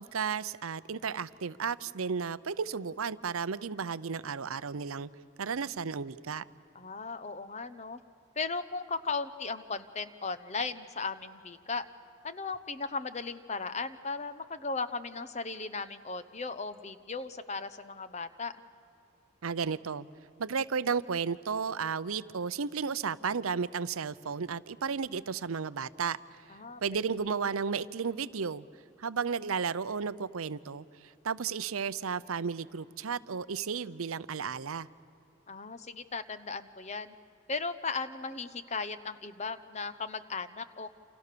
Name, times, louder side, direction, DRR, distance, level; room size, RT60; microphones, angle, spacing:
voice 1, 0.0-5.1 5.4-6.4 19.4-20.1 20.4-26.2 26.8-28.7 29.0-34.9, right 6 dB, 85° right, 16 dB, 0.7 m, -33 dB
voice 2, 6.7-8.0 8.4-11.9 12.2-18.5 26.5-26.8 35.5-37.1 37.5-40.9, left 4 dB, 30° left, 12 dB, 0.9 m, -36 dB
29.0 x 28.0 x 6.8 m, 2.8 s
head